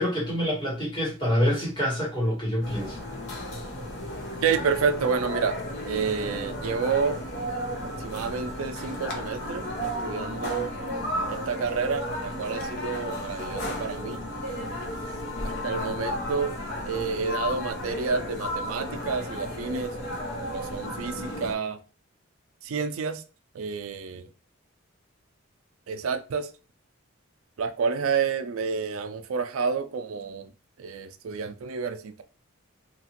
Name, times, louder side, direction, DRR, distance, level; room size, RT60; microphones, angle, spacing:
voice 1, 0.0-3.0, equal, 20° left, 1.3 m, -26 dB
sound 1, 2.6-21.5, left 1 dB, 55° left, 0.7 m, -33 dB
voice 2, 4.4-5.6 5.9-7.2 8.0-10.7 11.3-14.2 15.4-16.5 16.9-19.9 20.3-21.8 22.6-23.2 23.5-24.3 25.9-26.5 27.6-30.5 30.8-32.2, right 5 dB, 80° right, 0.4 m, -29 dB
2.9 x 2.5 x 2.8 m
head